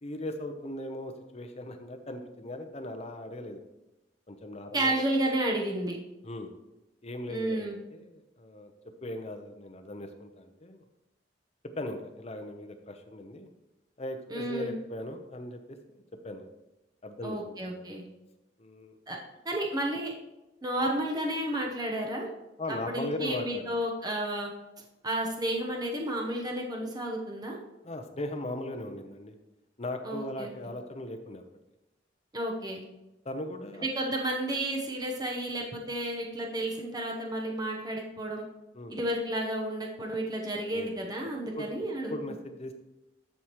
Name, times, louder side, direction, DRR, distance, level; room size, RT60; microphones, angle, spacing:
voice 1, 0.0-3.6 4.3-5.0 6.2-6.5 7.0-8.7 9.0-10.8 11.8-13.5 14.0-16.5 17.0-17.8 18.6-19.0 22.6-23.8 27.8-29.3 29.8-31.4 33.2-33.9 38.7-39.1 40.7-41.1 41.5-41.7 42.1-42.7, left 1 dB, 35° left, 6 dB, 0.8 m, -39 dB
voice 2, 4.7-6.0 7.3-7.8 14.3-14.8 17.2-18.0 19.1-19.2 19.4-20.1 20.6-22.3 22.7-24.5 25.0-27.6 30.0-30.5 32.3-32.9 33.8-38.4 38.9-42.1, right 1 dB, 20° right, 0 dB, 1.0 m, -31 dB
13.0 x 4.9 x 3.1 m, 0.98 s
head